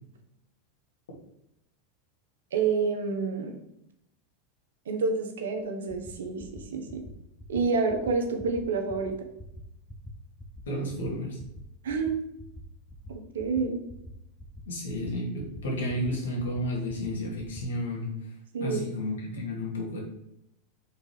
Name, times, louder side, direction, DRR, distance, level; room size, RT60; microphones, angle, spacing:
voice 1, 2.5-3.5 4.9-7.0 7.5-9.1 11.8-12.2 13.3-13.8 18.5-18.8, right 4 dB, 80° right, 5 dB, 1.2 m, -28 dB
sound 1, 5.6-5.7 5.9-6.1 6.4-6.6 6.9-7.1 7.4-7.6 7.9-8.1 8.4-8.6 8.9-9.1 9.4-9.6 9.9-10.1 10.4-10.6 10.9-11.1 11.4-11.6 11.9-12.1 12.4-12.6 12.9-13.1 13.4-13.6 13.9-14.1 14.4-14.6 14.9-15.1 15.4-15.6 15.9-16.1 16.4-16.6 16.9-17.1 17.4-17.6, left 1 dB, 15° left, 1.1 m, -44 dB
voice 2, 10.7-11.4 14.7-20.0, left 1 dB, 85° left, -2 dB, 2.3 m, -32 dB
5.3 x 4.0 x 5.0 m, 0.82 s
hypercardioid pair, 105°, 0 cm